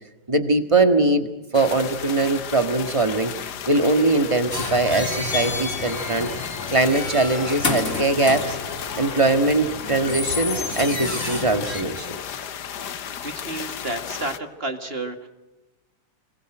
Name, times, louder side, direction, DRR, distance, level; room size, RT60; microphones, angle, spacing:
voice 1, 0.3-1.3 1.5-3.3 3.7-6.3 6.7-8.6 9.0-12.2, right 2 dB, 20° right, 7 dB, 1.5 m, -21 dB
sound 1, 1.5-14.4, left 8 dB, 70° left, 1.6 m, -34 dB
sound 2, 4.5-11.8, left 3 dB, 40° left, 3.9 m, -30 dB
voice 2, 12.8-15.3, right 2 dB, 35° right, 6 dB, 2.1 m, -32 dB
26.5 x 21.5 x 7.8 m, 1.0 s
omnidirectional pair, 1.9 m